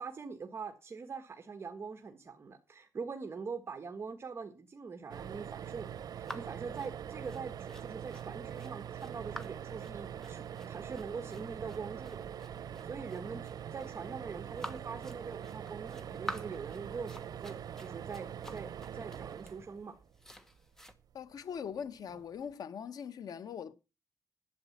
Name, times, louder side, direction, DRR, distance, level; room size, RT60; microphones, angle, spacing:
voice 1, 0.0-12.2 12.8-20.0, right 5 dB, 40° right, 1.5 m, -43 dB
sound 1, 5.1-20.4 22.0-22.2 22.5-22.6, right 9 dB, 85° right, 0.7 m, -43 dB
sound 2, 6.2-20.9, equal, 5° left, 1.4 m, -49 dB
voice 2, 21.1-23.7, left 7 dB, 90° left, 1.0 m, -41 dB
11.5 x 8.4 x 7.2 m
wide cardioid pair, 160°, 6 cm